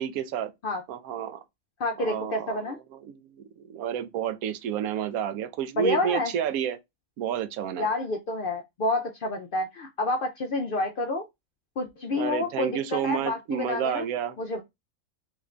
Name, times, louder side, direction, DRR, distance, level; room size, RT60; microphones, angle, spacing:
voice 1, 0.0-0.5 0.9-1.4 2.0-6.8 7.2-7.9 12.1-14.4, right 9 dB, 90° right, 1.0 m, -30 dB
voice 2, 1.8-2.8 5.8-6.3 7.8-11.3 11.8-14.1 14.4-14.6, left 2 dB, 60° left, 0.5 m, -29 dB
3.5 x 2.5 x 3.1 m
omnidirectional pair, 1.4 m